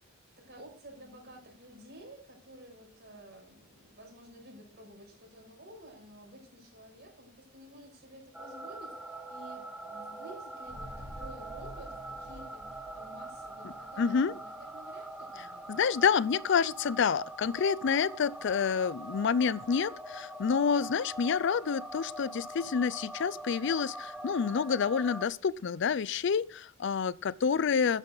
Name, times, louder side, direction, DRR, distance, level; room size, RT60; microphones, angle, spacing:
voice 1, 0.0-15.7, equal, 55° right, 6.1 m, -52 dB
sound 1, 8.3-25.3, right 1 dB, 5° right, 1.3 m, -43 dB
sound 2, 10.6-15.2 15.5-15.6, equal, 20° right, 3.3 m, -50 dB
voice 2, 14.0-14.3 15.7-28.0, left 6 dB, 60° left, 0.4 m, -28 dB
12.0 x 9.8 x 3.9 m
head